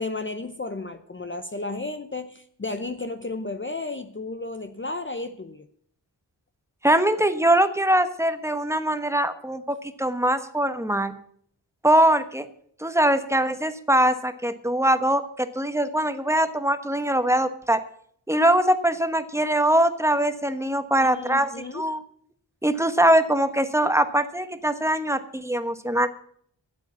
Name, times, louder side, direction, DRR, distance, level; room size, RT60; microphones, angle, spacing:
voice 1, 0.0-5.7 21.0-21.8, left 3 dB, 25° left, 9 dB, 0.7 m, -33 dB
voice 2, 6.8-11.1 11.8-12.4 12.8-17.8 18.3-22.0 22.6-26.1, right 1 dB, 5° right, 10 dB, 1.1 m, -22 dB
11.0 x 8.1 x 8.4 m, 0.64 s
wide cardioid pair, 55°, 44 cm